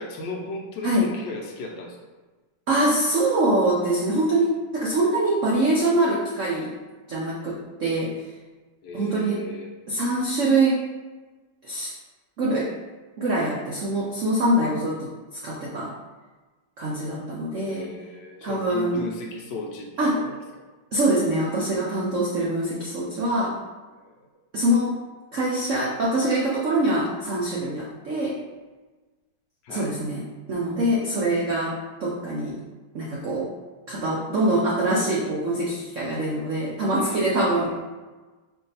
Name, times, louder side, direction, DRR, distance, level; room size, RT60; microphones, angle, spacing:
voice 1, 0.0-2.0 8.8-9.7 17.6-20.4 23.9-24.3 29.6-29.9 36.9-37.8, left 2 dB, 75° left, 0 dB, 1.2 m, -36 dB
voice 2, 2.7-6.7 7.1-8.1 8.9-9.4 9.9-10.8 11.6-11.9 12.4-12.7 13.2-15.1 15.4-15.9 16.8-17.9 18.4-19.0 20.0-20.2 20.9-23.6 24.5-25.0 25.3-28.4 29.7-30.2 30.5-32.5 32.9-33.5 33.9-37.8, right 1 dB, 85° right, -4 dB, 0.6 m, -24 dB
4.6 x 2.8 x 4.0 m, 1.3 s
omnidirectional pair, 2.3 m